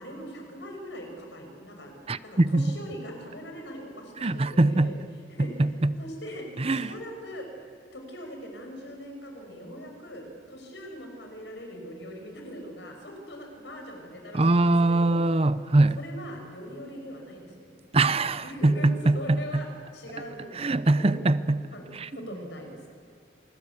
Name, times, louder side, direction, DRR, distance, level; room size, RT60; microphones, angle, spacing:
voice 1, 0.0-1.9 2.2-5.0 5.3-5.5 6.0-7.5 7.9-15.2 15.9-17.7 18.4-18.9 19.1-19.7 19.9-21.2 21.7-21.8 22.1-22.9, equal, 75° left, 3 dB, 6.2 m, -41 dB
voice 2, 2.1-2.7 4.2-4.9 5.4-5.9 6.6-6.9 14.3-16.0 17.9-19.6 20.5-21.7 21.9-22.1, right 2 dB, 35° right, 15 dB, 0.6 m, -23 dB
27.5 x 20.5 x 8.4 m, 2.2 s
head